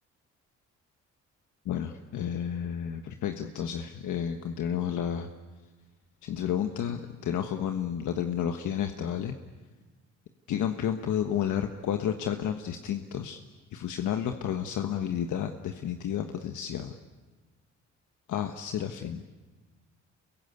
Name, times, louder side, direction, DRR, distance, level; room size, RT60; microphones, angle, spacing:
voice 1, 1.6-5.3 6.2-9.4 10.5-13.4 13.7-17.0 18.3-19.2, left 9 dB, 75° left, 6 dB, 1.4 m, -31 dB
27.5 x 22.5 x 9.6 m, 1.3 s
cardioid pair, 90°, 30 cm